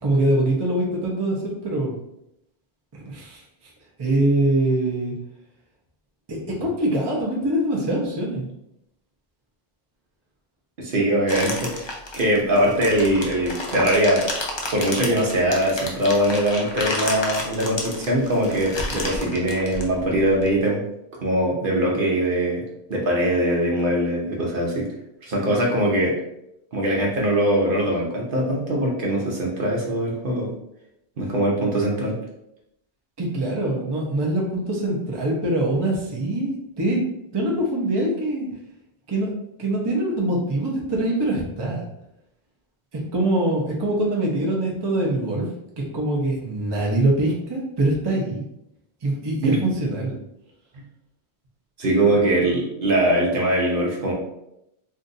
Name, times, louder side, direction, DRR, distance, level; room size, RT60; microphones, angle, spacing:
voice 1, 0.0-1.9 2.9-3.7 4.0-5.1 6.3-8.5 33.2-37.0 37.3-38.5 39.1-39.3 39.6-41.8 42.9-45.5 45.8-48.4 49.0-50.2, right 1 dB, 30° right, -2 dB, 0.6 m, -23 dB
voice 2, 10.8-14.2 14.7-20.8 21.2-22.6 22.9-24.9 25.2-26.1 26.7-30.5 31.2-32.1 49.4-49.6 50.7-50.8 51.8-54.1, right 1 dB, 55° right, -2 dB, 0.9 m, -22 dB
sound 1, 11.3-20.5, left 1 dB, 35° left, 0.4 m, -31 dB
2.6 x 2.4 x 3.9 m, 0.81 s
omnidirectional pair, 1.1 m